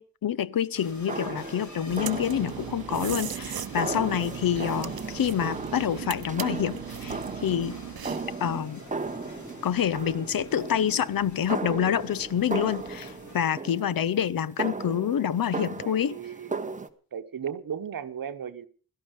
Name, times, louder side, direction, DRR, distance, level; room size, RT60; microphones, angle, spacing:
voice 1, 0.0-7.8 8.4-8.8 9.6-16.2, left 9 dB, 70° left, 0.6 m, -27 dB
sound 1, 0.7-13.4, left 2 dB, 50° left, 2.9 m, -48 dB
sound 2, 0.8-16.9, right 4 dB, 20° right, 0.9 m, -36 dB
sound 3, 1.9-8.4, right 10 dB, 80° right, 0.7 m, -38 dB
voice 2, 15.8-16.6 17.1-18.7, right 8 dB, 65° right, 1.1 m, -36 dB
17.0 x 12.5 x 5.2 m
wide cardioid pair, 145°, 36 cm